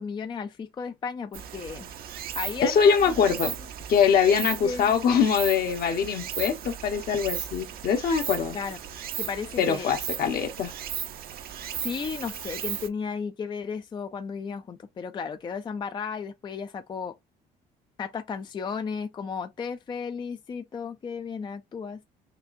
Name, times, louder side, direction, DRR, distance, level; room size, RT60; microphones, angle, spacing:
voice 1, 0.0-1.9 2.3-3.1 4.6-5.0 8.5-8.8 9.2-9.9 11.8-17.1 18.0-22.0, left 6 dB, 25° left, 0.4 m, -34 dB
Stream, 1.3-12.9, right 10 dB, 60° right, 0.7 m, -36 dB
voice 2, 2.6-3.5 3.9-8.6 9.6-10.7, left 7 dB, 60° left, 1.2 m, -23 dB
5.9 x 2.4 x 2.6 m
cardioid pair, 110°, 17 cm